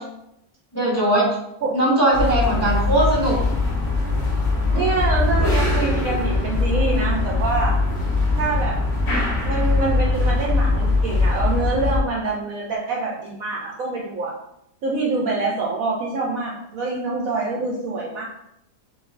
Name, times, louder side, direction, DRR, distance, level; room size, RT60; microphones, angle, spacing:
voice 1, 0.7-1.3 1.7-3.4, right 1 dB, 10° left, -6 dB, 1.1 m, -19 dB
sound 1, 2.1-12.0, left 3 dB, 50° left, 1.0 m, -21 dB
voice 2, 4.7-7.8 8.4-8.8 9.4-14.3 14.8-18.2, right 3 dB, 65° right, -2 dB, 0.9 m, -25 dB
6.3 x 2.6 x 2.5 m, 0.79 s
omnidirectional pair, 1.8 m